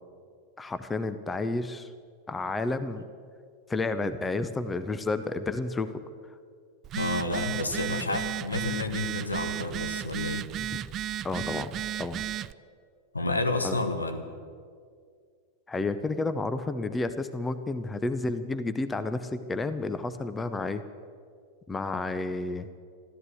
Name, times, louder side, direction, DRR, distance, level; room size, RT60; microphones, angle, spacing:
voice 1, 0.6-1.9 2.3-3.0 3.7-6.0 10.6-10.7 11.2-12.2 13.6-13.8 15.7-20.8 21.7-22.7, left 3 dB, 15° left, 11 dB, 0.7 m, -31 dB
Telephone, 6.8-12.5, right 12 dB, 30° right, 0.3 m, -34 dB
voice 2, 6.9-10.5 13.1-14.2, left 2 dB, 80° left, 7 dB, 1.3 m, -30 dB
13.5 x 13.5 x 7.8 m, 2.1 s
figure-of-eight pair, 90°, 0 cm